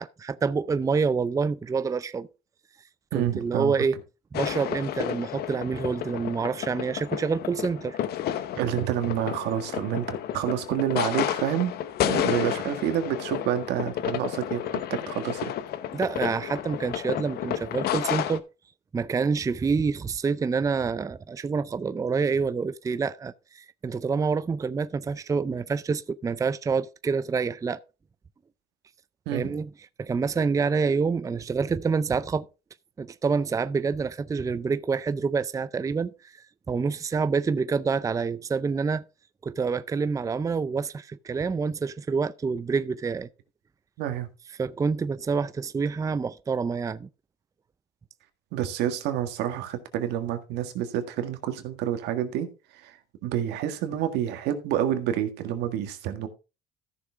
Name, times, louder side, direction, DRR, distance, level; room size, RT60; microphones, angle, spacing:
voice 1, 0.0-2.3 3.1-4.0 4.3-8.0 15.9-18.4 18.9-27.8 29.3-29.7 30.0-32.5 33.0-36.1 36.7-39.0 39.4-43.3 44.6-47.1, right 5 dB, 20° right, 0.5 m, -27 dB
voice 2, 3.1-3.7 8.6-11.7 12.0-15.5 29.2-29.5 44.0-44.3 48.5-53.0 53.2-56.3, right 11 dB, 90° right, 1.7 m, -28 dB
sound 1, 4.3-18.4, left 11 dB, 70° left, 0.9 m, -31 dB
14.0 x 6.5 x 3.5 m
cardioid pair, 110°, 17 cm